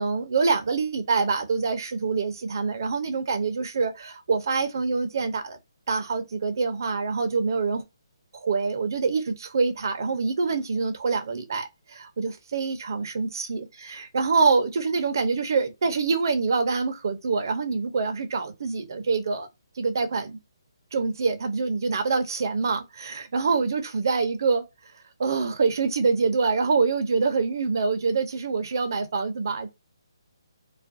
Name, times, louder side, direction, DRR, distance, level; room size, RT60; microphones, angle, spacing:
voice 1, 0.0-5.6 5.9-7.8 8.3-19.5 19.8-20.4 20.9-24.6 25.2-29.7, right 4 dB, 45° right, 0.6 m, -25 dB
2.4 x 2.2 x 2.5 m
hypercardioid pair, 170°, 3 cm